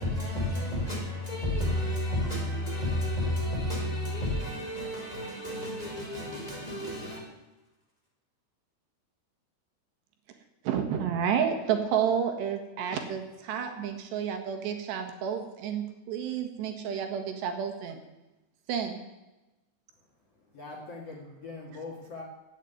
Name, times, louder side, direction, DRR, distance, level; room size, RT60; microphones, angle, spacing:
voice 1, 0.0-7.2, left 1 dB, 10° left, 4.3 m, -31 dB
voice 2, 10.6-18.0 18.7-19.0, right 8 dB, 75° right, 3.6 m, -30 dB
voice 3, 20.4-22.2, left 3 dB, 45° left, 2.7 m, -42 dB
16.5 x 8.4 x 9.3 m
omnidirectional pair, 5.1 m